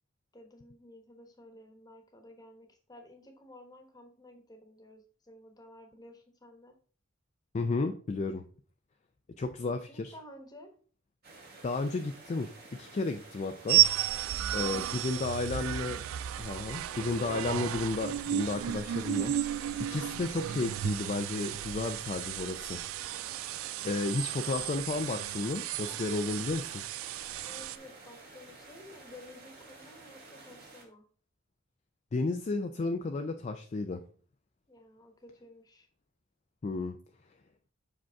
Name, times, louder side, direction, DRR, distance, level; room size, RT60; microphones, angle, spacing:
voice 1, 0.3-6.8 9.9-10.7 14.5-15.4 27.4-31.0 34.7-35.9, left 1 dB, 20° left, 4 dB, 1.1 m, -53 dB
voice 2, 7.5-8.4 9.4-10.1 11.6-13.8 14.5-16.0 16.4-19.3 19.8-22.8 23.8-26.8 32.1-34.0 36.6-37.0, left 3 dB, 35° left, 6 dB, 0.4 m, -33 dB
sound 1, 11.2-30.8, right 3 dB, 50° right, 1.8 m, -52 dB
sound 2, 13.7-27.8, right 13 dB, 85° right, 0.3 m, -33 dB
6.0 x 5.0 x 3.5 m, 0.43 s
head